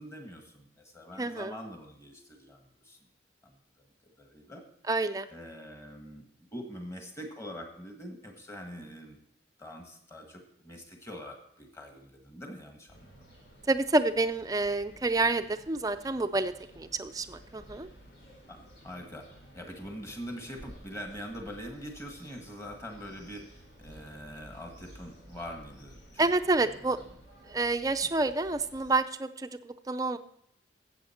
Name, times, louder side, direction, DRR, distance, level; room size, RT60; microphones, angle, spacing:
voice 1, 0.0-3.0 3.4-3.6 4.2-4.6 5.3-6.2 6.5-9.2 9.6-13.2 18.5-18.6 18.8-19.3 19.5-23.4 23.8-26.3 26.6-27.1 28.0-28.1, equal, 15° left, 3 dB, 1.5 m, -44 dB
voice 2, 1.2-1.5 4.9-5.3 13.7-17.9 26.2-27.0 27.5-30.2, right 2 dB, 20° right, 9 dB, 0.4 m, -28 dB
sound 1, 12.9-28.9, equal, 75° left, 4.6 m, -54 dB
13.5 x 8.1 x 4.4 m, 0.74 s
head